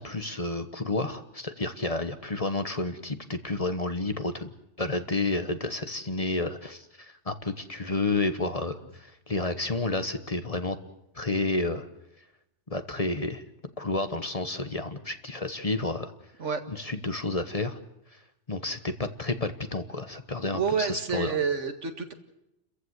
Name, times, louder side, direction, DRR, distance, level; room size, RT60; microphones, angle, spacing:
voice 1, 0.0-4.5 4.8-10.8 11.1-11.9 12.7-13.4 13.8-16.1 16.7-17.8 18.5-21.4, left 2 dB, 30° left, 9 dB, 1.2 m, -30 dB
voice 2, 20.5-22.1, right 6 dB, 80° right, 6 dB, 2.2 m, -28 dB
30.0 x 15.0 x 8.0 m, 0.88 s
omnidirectional pair, 1.2 m